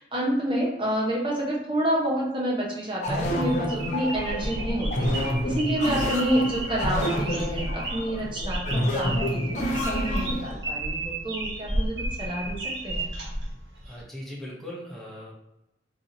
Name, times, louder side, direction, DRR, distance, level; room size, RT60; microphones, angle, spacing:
voice 1, 0.0-13.1, right 1 dB, 30° right, -5 dB, 0.9 m, -29 dB
sound 1, 3.0-10.5, equal, 40° left, 0.6 m, -28 dB
sound 2, 3.3-14.0, right 1 dB, 80° right, 0.9 m, -32 dB
voice 2, 13.8-15.3, equal, ahead, -5 dB, 0.7 m, -39 dB
2.7 x 2.5 x 3.9 m, 0.90 s
head